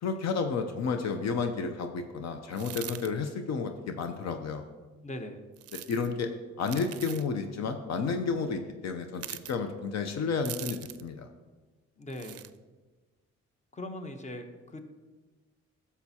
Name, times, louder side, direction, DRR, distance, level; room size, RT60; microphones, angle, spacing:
voice 1, 0.0-4.6 5.9-6.3 6.6-11.3, left 5 dB, 65° left, 7 dB, 0.7 m, -31 dB
sound 1, 2.5-3.1 5.6-6.1 6.6-7.3 9.2-9.6 10.5-11.1 12.1-12.5, right 13 dB, 55° right, 0.4 m, -41 dB
voice 2, 5.0-5.4 12.0-12.4 13.7-14.8, left 1 dB, 25° left, 7 dB, 1.0 m, -40 dB
11.5 x 7.1 x 2.8 m, 1.3 s
cardioid pair, 80°, 29 cm